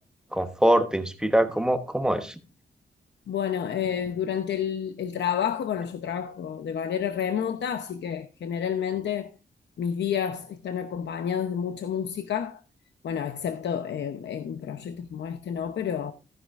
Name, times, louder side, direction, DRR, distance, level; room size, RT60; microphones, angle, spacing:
voice 1, 0.3-2.3, right 1 dB, 5° right, 1.1 m, -23 dB
voice 2, 3.3-9.3 9.8-12.6 13.0-16.1, left 8 dB, 85° left, 0.8 m, -30 dB
14.5 x 10.0 x 2.5 m
wide cardioid pair, 145°, 18 cm